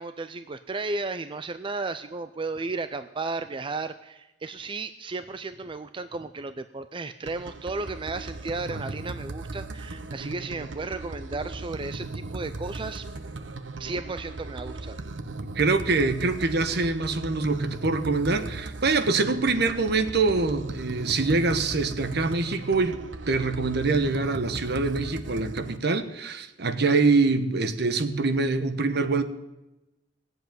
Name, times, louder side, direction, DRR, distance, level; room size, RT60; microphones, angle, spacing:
voice 1, 0.0-13.1 13.8-15.0, right 3 dB, 30° right, 11 dB, 0.5 m, -34 dB
sound 1, 7.3-25.8, right 2 dB, 90° right, 1.0 m, -37 dB
voice 2, 15.5-23.0 23.3-29.2, right 3 dB, 60° right, 10 dB, 1.2 m, -24 dB
17.5 x 8.0 x 9.1 m, 0.98 s
head